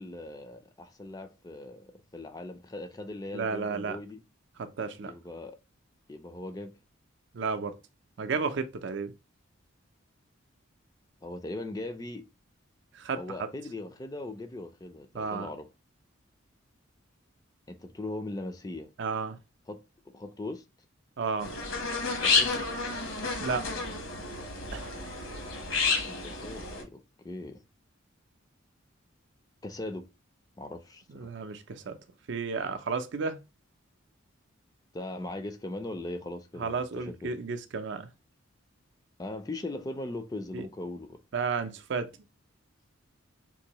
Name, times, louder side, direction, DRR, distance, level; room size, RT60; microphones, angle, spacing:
voice 1, 0.0-4.2 5.0-5.6 6.1-6.7 11.2-12.3 13.1-15.7 17.7-18.9 19.7-19.8 20.1-20.6 22.2-22.7 26.1-27.6 29.6-30.1 30.6-31.3 34.9-37.3 39.2-41.2, left 2 dB, 20° left, 0.4 m, -39 dB
voice 2, 3.3-4.0 4.6-5.1 7.3-7.8 8.2-9.1 12.9-13.2 15.1-15.5 19.0-19.4 21.2-21.5 23.4-23.7 24.7-25.0 31.1-32.0 32.3-33.4 36.6-38.1 40.5-40.7 41.3-42.1, right 5 dB, 60° right, 0.5 m, -32 dB
sound 1, 21.4-26.8, left 4 dB, 70° left, 1.1 m, -30 dB
3.8 x 2.6 x 2.9 m
head